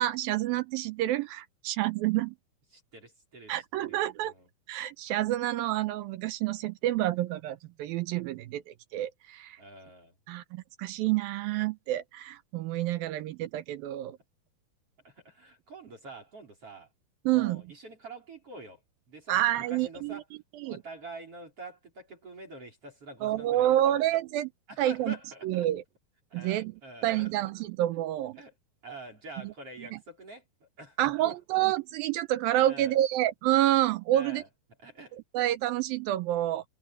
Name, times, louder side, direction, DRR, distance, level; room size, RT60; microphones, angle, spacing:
voice 1, 0.0-2.4 3.5-4.3 4.7-9.6 10.3-14.2 17.3-17.6 19.3-20.2 20.6-20.8 23.2-24.5 24.8-25.2 25.4-25.8 26.3-26.7 27.0-28.4 29.4-29.5 29.9-30.0 31.0-34.4 35.3-36.6, right 14 dB, 80° right, 2.3 m, -28 dB
voice 2, 2.7-4.5 9.6-10.2 15.0-16.9 17.3-18.8 19.1-20.2 20.6-24.1 24.7-25.7 26.3-27.3 28.4-28.5 28.8-31.4 32.7-33.0 34.1-34.5 34.8-35.2, right 2 dB, 35° right, 5.7 m, -46 dB
omnidirectional pair, 4.6 m